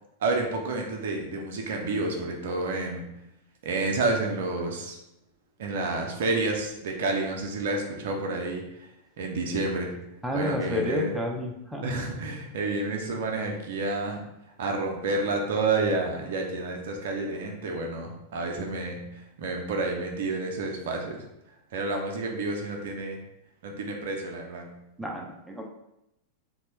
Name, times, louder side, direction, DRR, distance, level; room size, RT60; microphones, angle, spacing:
voice 1, 0.2-3.0 3.6-5.0 5.6-8.6 9.2-9.9 10.3-11.1 11.8-14.2 14.6-21.2 21.7-23.2 23.6-24.7, right 3 dB, 55° right, 2 dB, 0.5 m, -29 dB
voice 2, 10.2-11.9 25.0-25.7, left 1 dB, 5° right, 0 dB, 0.4 m, -30 dB
2.9 x 2.1 x 2.9 m, 0.85 s
figure-of-eight pair, 90°, 0 cm